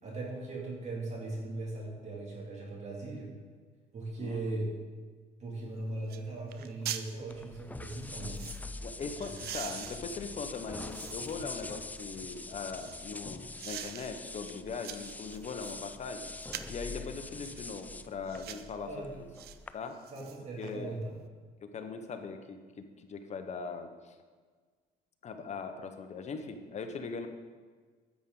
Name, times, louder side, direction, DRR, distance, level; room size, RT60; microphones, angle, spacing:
voice 1, 0.0-3.3 3.9-4.7 5.4-8.4 9.2-9.3 18.9-19.1 20.1-21.1, right 2 dB, 40° right, -2 dB, 2.4 m, -39 dB
voice 2, 4.2-4.7 8.8-16.3 16.7-19.3 19.7-20.0 20.6-21.0 21.6-24.2 25.2-27.3, left 4 dB, 40° left, 6 dB, 1.0 m, -40 dB
sound 1, 5.6-5.7 6.1-6.2 6.5-7.1 7.8-8.6 9.2-11.5 12.0-13.1 13.6-14.1 14.5-15.8 16.4-16.8 17.4-17.7 18.3-18.7 19.4-19.6 19.9-20.7 21.1-21.2, right 11 dB, 65° right, 0.6 m, -44 dB
sound 2, 7.3-19.7, left 3 dB, 10° left, 0.3 m, -44 dB
10.5 x 8.5 x 3.9 m, 1.5 s
cardioid pair, 110°, 17 cm